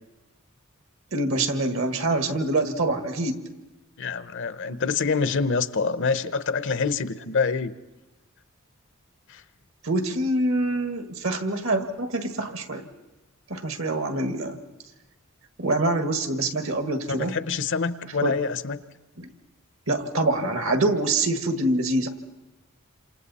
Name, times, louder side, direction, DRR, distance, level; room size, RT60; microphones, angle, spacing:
voice 1, 1.1-3.4 9.8-12.9 13.5-14.6 15.6-17.3 18.2-18.4 19.2-19.3 19.9-22.1, right 2 dB, 65° right, 8 dB, 1.7 m, -25 dB
voice 2, 4.0-7.7 9.3-9.4 17.3-18.8, left 5 dB, 60° left, 14 dB, 0.8 m, -26 dB
28.0 x 27.0 x 4.2 m, 1.1 s
head